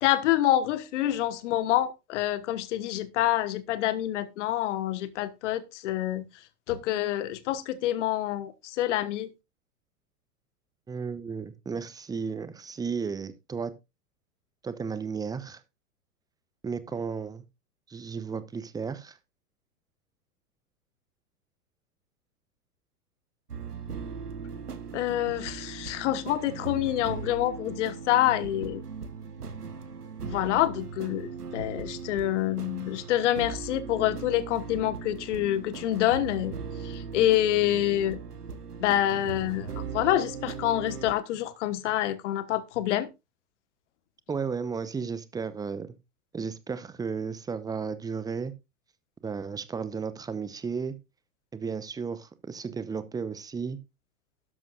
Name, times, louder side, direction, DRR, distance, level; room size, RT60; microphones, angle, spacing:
voice 1, 0.0-6.2 6.7-9.3 24.9-28.8 30.2-36.5 36.8-38.2 38.8-43.1, left 13 dB, 50° left, 1.4 m, -27 dB
voice 2, 10.9-13.7 14.6-15.6 16.6-17.4 17.9-19.2 44.3-46.0 46.3-48.5 49.2-51.0 51.5-53.8, right 5 dB, 10° right, 0.8 m, -34 dB
sound 1, 23.5-41.1, right 5 dB, 85° right, 1.2 m, -39 dB
12.5 x 10.5 x 2.5 m
figure-of-eight pair, 100°, 45 cm